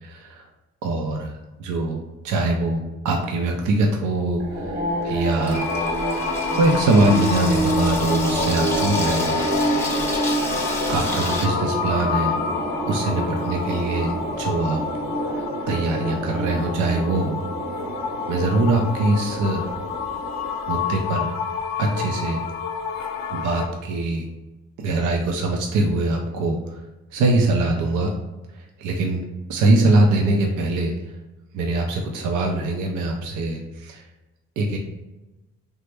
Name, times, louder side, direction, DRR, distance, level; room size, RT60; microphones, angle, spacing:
voice 1, 0.0-0.4 0.8-1.3 1.6-4.7 5.0-5.7 6.6-9.4 9.7-9.8 10.9-12.4 12.9-14.8 15.3-17.4 18.3-19.7 20.7-21.3 21.8-22.4 23.3-24.3 24.8-26.8 27.1-28.1 28.8-29.2 29.5-30.9 31.5-34.0 34.6-34.8, right 2 dB, 80° right, 1 dB, 0.5 m, -22 dB
Water tap faucet / Sink (filling or washing), 4.3-11.5, left 1 dB, 10° left, 0.7 m, -32 dB
sound 1, 4.4-21.0, right 1 dB, 35° right, 0.7 m, -28 dB
sound 2, 5.5-23.7, left 6 dB, 65° left, 0.4 m, -29 dB
3.2 x 2.0 x 3.2 m, 1.1 s
cardioid pair, 90°, 30 cm